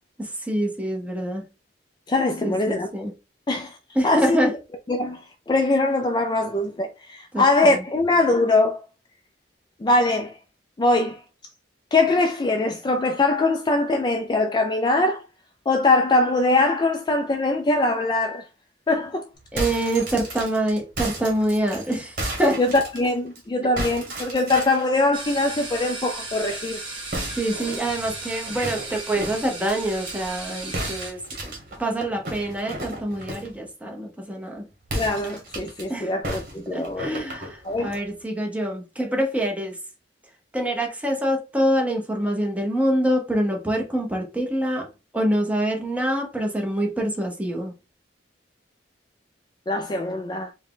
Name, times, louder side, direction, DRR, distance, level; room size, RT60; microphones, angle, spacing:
voice 1, 0.2-1.4 2.4-3.1 3.9-4.5 7.3-7.8 19.5-22.6 27.3-34.6 35.9-36.1 36.7-39.8 40.5-44.9 45.1-47.7, right 1 dB, 10° right, 0.8 m, -25 dB
voice 2, 2.1-2.9 3.5-3.8 4.0-4.4 4.9-8.8 9.8-10.4 10.8-11.2 11.9-15.2 15.7-18.4 18.9-19.2 22.6-26.8 35.0-37.2 37.6-37.9 49.7-50.5, left 2 dB, 25° left, 0.3 m, -22 dB
sound 1, 19.4-23.4 23.8-24.9 27.1-30.1 30.7-33.6 34.8-35.8 36.2-38.0, right 1 dB, 50° right, 1.5 m, -33 dB
sound 2, 25.1-31.1, right 3 dB, 30° right, 1.5 m, -35 dB
4.5 x 2.2 x 3.6 m
head